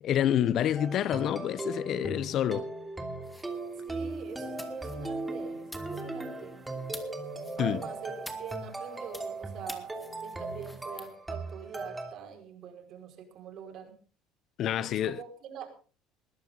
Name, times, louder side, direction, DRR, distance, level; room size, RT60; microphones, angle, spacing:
voice 1, 0.0-2.7 7.6-7.8 14.6-15.2, left 10 dB, 45° left, 0.8 m, -28 dB
sound 1, 0.7-12.1, right 2 dB, 10° right, 2.9 m, -38 dB
sound 2, 3.2-11.1, left 1 dB, 5° left, 2.5 m, -50 dB
voice 2, 3.8-6.6 7.6-9.9 10.2-13.9 14.8-15.7, right 7 dB, 50° right, 5.4 m, -44 dB
20.5 x 14.5 x 3.9 m
cardioid pair, 130°, 0 cm